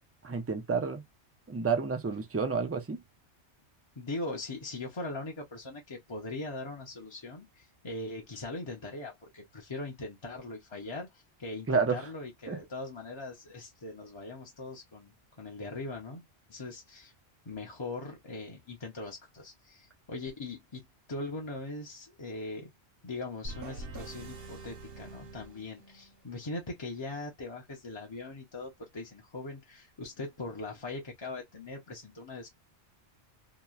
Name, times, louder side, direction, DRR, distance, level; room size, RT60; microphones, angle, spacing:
voice 1, 0.2-1.0 1.5-3.0 11.7-12.1 12.5-12.6, right 5 dB, 25° right, 0.3 m, -30 dB
voice 2, 4.0-17.1 17.5-22.7 23.0-32.5, left 2 dB, 35° left, 0.5 m, -41 dB
sound 1, 23.4-26.2, right 2 dB, 60° right, 0.9 m, -44 dB
2.9 x 2.1 x 2.3 m
omnidirectional pair, 1.1 m